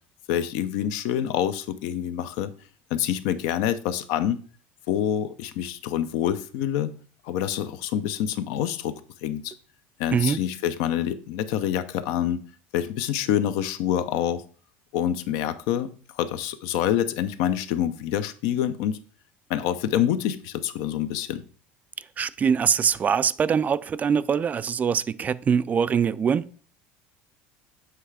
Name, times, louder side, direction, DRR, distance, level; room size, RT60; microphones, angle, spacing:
voice 1, 0.3-2.5 2.9-4.4 4.9-6.9 7.2-9.5 10.0-12.4 12.7-14.4 14.9-15.9 16.2-19.0 19.5-21.4, left 10 dB, 70° left, 0.7 m, -26 dB
voice 2, 22.2-26.4, right 7 dB, 25° right, 0.3 m, -23 dB
7.7 x 3.4 x 4.8 m
supercardioid pair, 115°, 6 cm